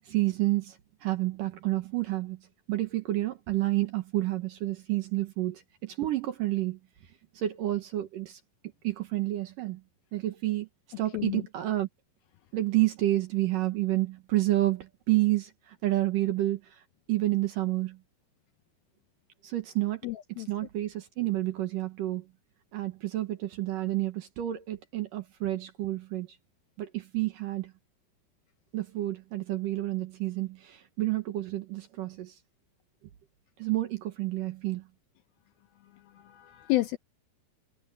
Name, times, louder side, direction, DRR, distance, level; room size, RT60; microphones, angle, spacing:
voice 1, 0.1-2.4 2.7-6.8 7.4-8.4 8.8-9.8 10.1-10.7 11.0-11.9 12.5-16.8 17.1-18.0 19.4-20.0 20.3-22.2 22.7-26.3 26.8-27.7 28.7-32.4 33.6-34.8, right 16 dB, 70° right, 2.3 m, -29 dB
voice 2, 20.0-20.5 36.2-37.0, left 18 dB, 80° left, 2.2 m, -30 dB
omnidirectional pair, 5.0 m